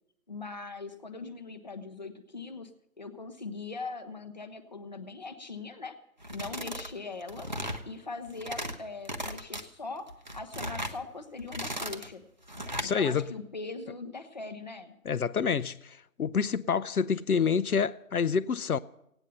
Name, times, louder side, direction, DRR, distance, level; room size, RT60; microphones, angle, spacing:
voice 1, 0.3-6.0 6.3-7.5 7.8-12.2 12.8-14.9, left 3 dB, 30° left, 0.7 m, -41 dB
sound 1, 6.2-6.9 7.2-7.8 8.3-8.8 9.0-9.6 10.1-11.0 11.4-12.1 12.5-12.9, equal, 30° right, 0.7 m, -36 dB
voice 2, 12.7-13.3 15.0-18.8, left 6 dB, 70° left, 0.6 m, -28 dB
17.0 x 9.0 x 6.7 m
figure-of-eight pair, 160°, 45 cm